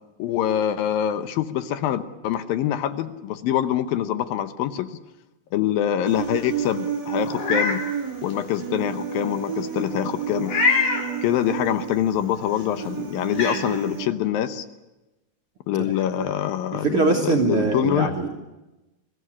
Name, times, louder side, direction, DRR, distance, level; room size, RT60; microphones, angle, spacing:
voice 1, 0.2-4.9 5.5-7.8 8.2-10.6 11.2-14.7 15.7-18.2, left 11 dB, 75° left, 11 dB, 2.5 m, -25 dB
Human voice, 6.1-14.0, right 8 dB, 30° right, 3.1 m, -31 dB
Meow, 7.3-7.8 8.3-8.4 10.4-11.1 12.6-12.7 13.3-13.6, left 4 dB, 55° left, 4.8 m, -22 dB
voice 2, 16.7-18.4, right 4 dB, 60° right, 1 dB, 1.5 m, -23 dB
23.0 x 16.5 x 9.9 m, 1.0 s
omnidirectional pair, 4.6 m